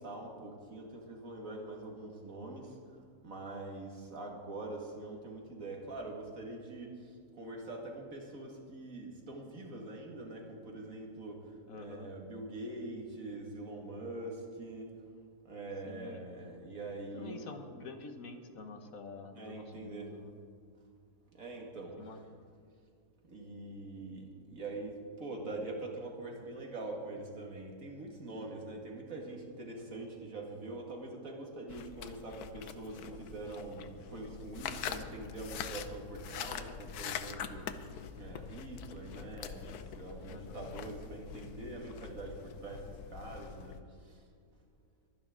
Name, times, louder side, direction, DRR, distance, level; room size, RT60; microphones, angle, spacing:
voice 1, 0.0-2.8 3.2-14.9 15.4-17.5 19.3-20.2 21.3-22.2 23.2-44.2, right 2 dB, 60° right, 0 dB, 2.3 m, -44 dB
voice 2, 11.7-12.1 15.8-16.2 17.1-20.3 22.0-22.2 40.3-40.6, left 4 dB, 65° left, 6 dB, 1.5 m, -47 dB
sound 1, 31.7-43.8, left 8 dB, 90° left, 1.2 m, -44 dB
23.0 x 10.5 x 3.8 m, 2.1 s
omnidirectional pair, 1.6 m